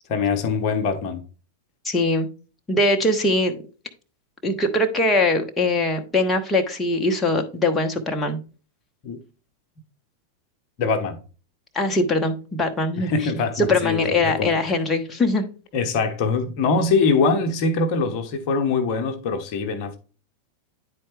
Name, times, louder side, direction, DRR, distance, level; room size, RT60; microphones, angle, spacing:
voice 1, 0.1-1.2 9.0-9.2 10.8-11.2 13.0-14.5 15.7-20.0, left 4 dB, 40° left, 1.0 m, -23 dB
voice 2, 1.8-2.3 2.7-3.6 4.4-8.4 11.7-13.1 13.6-15.4, left 2 dB, 10° left, 1.0 m, -21 dB
9.6 x 4.4 x 3.3 m
figure-of-eight pair, 90°, 0 cm